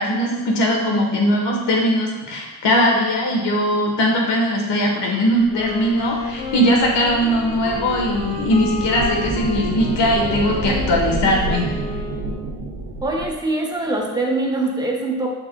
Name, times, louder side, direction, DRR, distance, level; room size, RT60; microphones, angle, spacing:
voice 1, 0.0-11.7, equal, 90° left, 0 dB, 1.4 m, -20 dB
sound 1, 5.3-13.4, right 3 dB, 90° right, 1.2 m, -29 dB
Wind instrument woodwind instrument, 5.4-12.6, left 3 dB, 70° left, 0.9 m, -32 dB
voice 2, 13.0-15.3, right 2 dB, 10° right, 0 dB, 0.8 m, -23 dB
7.6 x 5.8 x 2.3 m, 1.1 s
wide cardioid pair, 165°, 40 cm